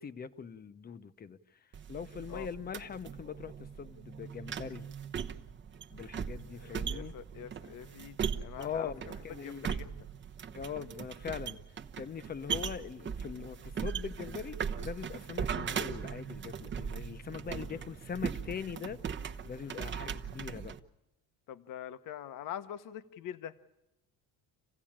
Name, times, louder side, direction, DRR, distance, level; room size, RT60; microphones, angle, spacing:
voice 1, 0.0-1.4 1.9-4.9 5.9-7.1 8.6-9.7 10.5-11.6 12.0-19.0 19.4-20.8, left 7 dB, 25° left, 0.8 m, -41 dB
sound 1, 1.7-20.8, right 7 dB, 30° right, 0.9 m, -39 dB
voice 2, 6.5-10.0 17.7-17.9 19.6-19.8 21.5-23.6, left 10 dB, 55° left, 1.0 m, -45 dB
27.5 x 16.0 x 8.8 m
cardioid pair, 140°, 37 cm